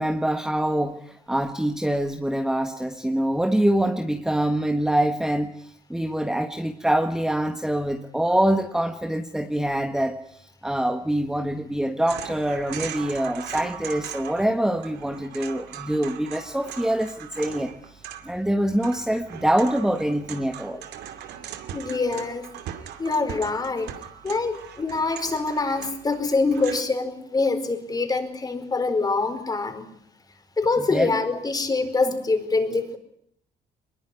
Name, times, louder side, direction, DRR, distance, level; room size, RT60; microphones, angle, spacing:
voice 1, 0.0-20.9 30.8-31.1, right 1 dB, 5° right, 6 dB, 1.5 m, -25 dB
sound 1, 12.1-14.5 14.8-26.8, right 10 dB, 80° right, 2.6 m, -39 dB
voice 2, 21.7-22.5 23.0-23.9 24.2-29.8 30.6-33.0, left 3 dB, 25° left, 7 dB, 4.7 m, -25 dB
23.0 x 21.5 x 9.7 m, 0.70 s
cardioid pair, 110°, 17 cm